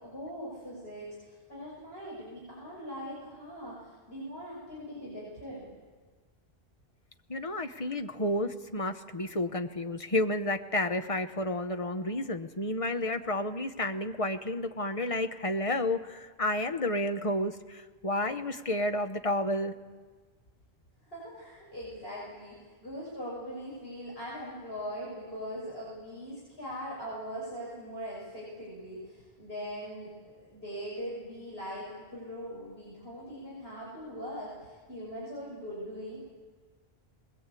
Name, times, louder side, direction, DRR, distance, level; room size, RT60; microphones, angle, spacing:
voice 1, 0.0-5.7 21.0-36.2, equal, 65° left, -7 dB, 6.5 m, -41 dB
voice 2, 7.3-19.7, left 1 dB, 35° left, 7 dB, 1.0 m, -31 dB
21.0 x 20.5 x 8.4 m, 1.4 s
omnidirectional pair, 1.1 m